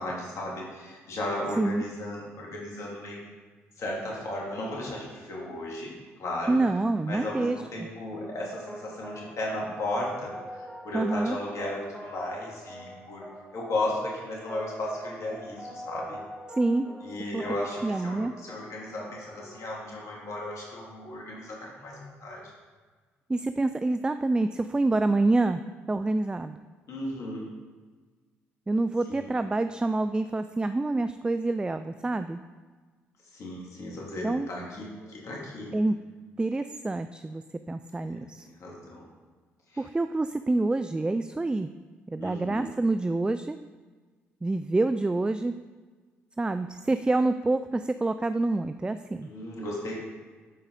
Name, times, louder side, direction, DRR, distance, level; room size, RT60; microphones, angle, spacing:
voice 1, 0.0-3.2 3.8-6.6 7.1-13.2 13.5-16.2 17.0-22.4 26.9-27.5 29.1-29.3 33.2-35.7 38.0-39.1 39.7-39.8 42.2-42.7 49.2-49.9, left 1 dB, 55° left, -3 dB, 2.7 m, -35 dB
voice 2, 6.5-7.9 10.9-11.4 16.6-16.9 17.3-17.4 17.8-18.4 23.3-25.6 25.9-26.6 28.7-32.4 34.2-34.5 35.7-36.0 36.4-38.5 39.8-41.7 42.1-43.6 44.4-45.5 46.4-49.3, right 2 dB, 15° right, 10 dB, 0.4 m, -27 dB
sound 1, 8.1-19.7, equal, 10° left, 2.0 m, -44 dB
12.0 x 4.8 x 4.1 m, 1.4 s
hypercardioid pair, 55°, 6 cm